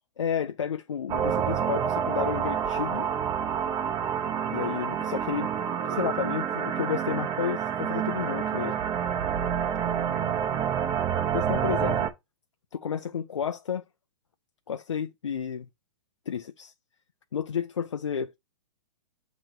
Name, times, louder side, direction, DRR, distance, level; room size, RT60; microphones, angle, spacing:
voice 1, 0.2-3.1 4.5-5.5 5.9-8.8 11.3-12.1 12.7-13.8 14.7-15.7 16.3-16.7 17.3-18.4, left 7 dB, 90° left, 0.5 m, -31 dB
sound 1, 1.1-12.1, right 8 dB, 25° right, 0.9 m, -28 dB
7.6 x 3.0 x 4.5 m
hypercardioid pair, 125°, 15 cm